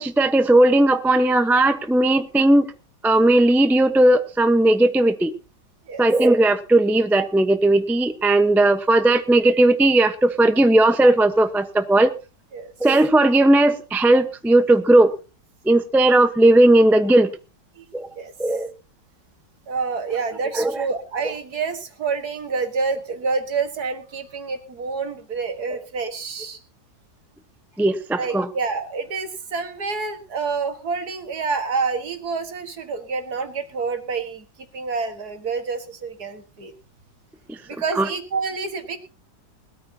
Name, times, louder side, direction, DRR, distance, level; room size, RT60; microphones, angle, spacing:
voice 1, 0.0-2.7 3.0-5.3 6.0-12.1 12.8-15.1 15.6-17.3 17.9-18.1 18.4-18.7 20.5-20.8 27.8-28.5 38.0-38.1, right 1 dB, ahead, 9 dB, 0.6 m, -17 dB
voice 2, 19.7-26.6 28.2-34.5 34.7-36.7 37.7-39.0, right 4 dB, 60° right, 8 dB, 2.2 m, -28 dB
20.5 x 13.5 x 2.8 m, 0.32 s
omnidirectional pair, 1.9 m